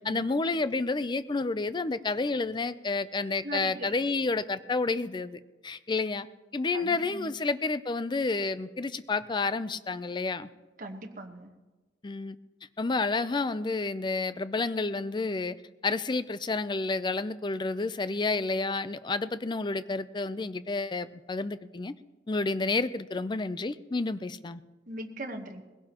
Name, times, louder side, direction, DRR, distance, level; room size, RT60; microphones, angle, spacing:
voice 1, 0.0-6.3 6.5-10.5 12.0-12.4 12.8-15.5 15.8-21.9 22.3-24.6, left 3 dB, 25° left, 14 dB, 0.4 m, -30 dB
voice 2, 3.4-3.9 6.7-7.3 10.8-11.5 24.9-25.6, right 1 dB, 45° right, 3 dB, 1.2 m, -39 dB
21.0 x 16.5 x 2.9 m, 1.2 s
head